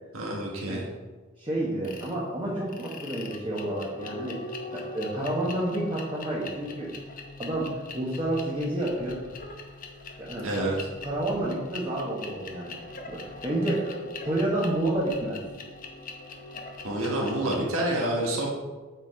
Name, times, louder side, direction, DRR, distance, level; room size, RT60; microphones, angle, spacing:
voice 1, 0.1-0.9 10.4-10.8 16.8-18.5, right 1 dB, 75° right, -2 dB, 1.6 m, -28 dB
voice 2, 1.4-4.4 4.7-6.9 7.4-9.2 10.2-10.7 11.0-12.8 13.1-14.0 14.2-15.4, right 1 dB, 20° right, -6 dB, 1.1 m, -29 dB
sound 1, 1.8-2.1 2.7-17.6, left 3 dB, 40° left, 0.8 m, -42 dB
7.9 x 4.2 x 4.4 m, 1.3 s
head